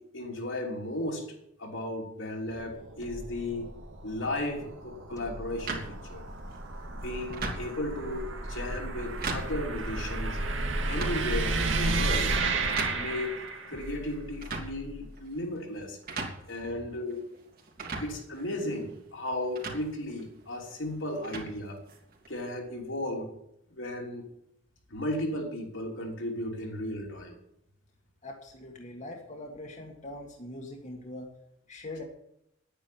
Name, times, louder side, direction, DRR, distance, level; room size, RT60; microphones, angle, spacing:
voice 1, 0.0-3.7 4.0-6.3 6.9-10.4 10.9-12.4 12.9-13.4 13.7-16.0 16.5-17.2 18.0-21.8 22.3-23.4 23.7-24.3 24.9-27.4, left 1 dB, 75° left, 0 dB, 3.3 m, -35 dB
sound 1, 2.5-13.9, right 3 dB, 75° right, 2.0 m, -32 dB
sound 2, 3.0-4.3 5.2-6.8 7.3-8.7 9.4-11.1 11.6-13.0 13.7-15.3, left 1 dB, 15° left, 1.7 m, -46 dB
sound 3, 5.7-22.3, right 3 dB, 50° right, 3.0 m, -41 dB
voice 2, 28.2-31.3 31.7-32.0, left 1 dB, 40° left, 1 dB, 1.8 m, -42 dB
10.0 x 10.0 x 9.3 m, 0.80 s
head